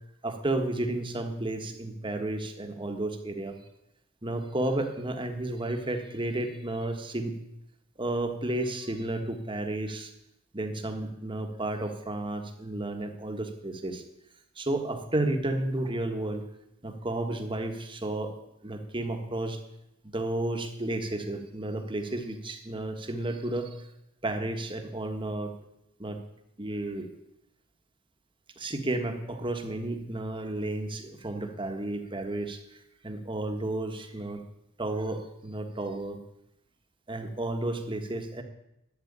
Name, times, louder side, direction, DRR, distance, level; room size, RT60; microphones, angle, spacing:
voice 1, 0.2-3.6 4.2-7.3 8.0-10.1 10.5-14.0 14.6-16.4 16.8-18.3 18.6-19.6 20.1-23.8 24.2-25.5 26.0-26.2 26.6-27.1 28.6-32.6 33.0-34.4 34.8-36.2 37.1-38.4, right 1 dB, 25° right, 6 dB, 1.5 m, -32 dB
12.0 x 8.1 x 10.0 m, 0.86 s
head